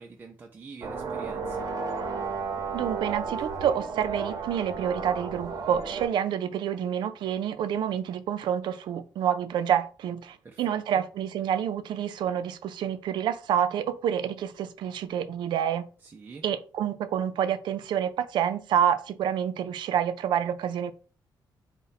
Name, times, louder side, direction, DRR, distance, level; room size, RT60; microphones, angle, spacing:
voice 1, 0.0-1.7 10.4-11.0 16.0-16.4, right 4 dB, 25° right, 0.4 m, -46 dB
sound 1, 0.8-6.1, right 5 dB, 50° right, 0.7 m, -33 dB
voice 2, 2.7-15.8 16.4-20.9, right 9 dB, 85° right, 0.4 m, -28 dB
4.0 x 2.1 x 4.0 m
wide cardioid pair, 155°, 8 cm